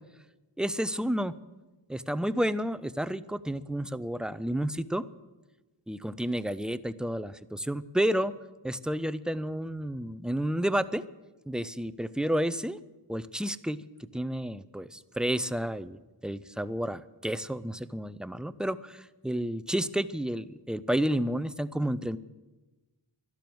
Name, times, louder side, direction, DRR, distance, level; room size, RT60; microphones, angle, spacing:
voice 1, 0.6-1.3 1.9-5.0 5.9-8.3 8.6-11.0 11.5-12.8 13.1-13.8 14.1-22.2, right 1 dB, ahead, 14 dB, 0.4 m, -30 dB
12.0 x 11.5 x 7.8 m, 1.1 s
cardioid pair, 50°, 49 cm